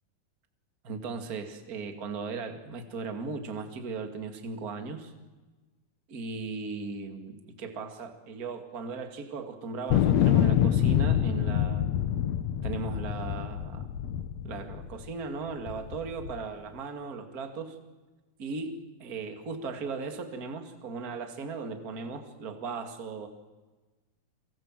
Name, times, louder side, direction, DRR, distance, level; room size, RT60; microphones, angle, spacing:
voice 1, 0.8-5.1 6.1-12.1 12.6-13.9 14.4-17.8 18.4-23.3, right 4 dB, 30° right, 6 dB, 2.1 m, -37 dB
sound 1, 9.9-15.1 15.7-16.4, left 10 dB, 85° left, 1.5 m, -26 dB
28.5 x 25.0 x 7.6 m, 1.2 s
omnidirectional pair, 4.6 m